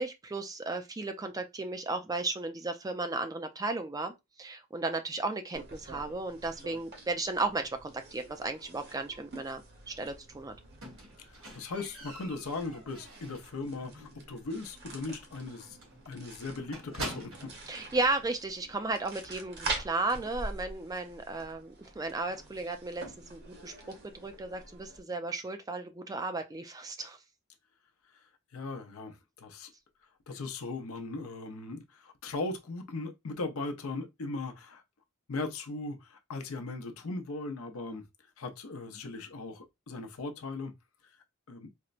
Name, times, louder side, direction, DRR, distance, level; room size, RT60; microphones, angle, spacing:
voice 1, 0.0-4.1 4.4-10.5 17.7-23.0 23.3-27.2, right 3 dB, 15° right, 0.4 m, -34 dB
sound 1, 5.5-25.0, right 3 dB, 50° right, 1.0 m, -45 dB
Squeak, 10.8-13.6 13.9-14.3 14.6-14.7 15.1-15.2 15.4-15.6 15.8-17.6 18.5-18.6, right 1 dB, 75° right, 1.7 m, -44 dB
voice 2, 11.2-15.8 16.1-17.5 28.1-28.2 28.5-29.7 30.3-34.8 35.3-38.0 38.4-40.7 41.5-41.7, left 3 dB, 90° left, 0.7 m, -38 dB
4.3 x 2.1 x 2.4 m
head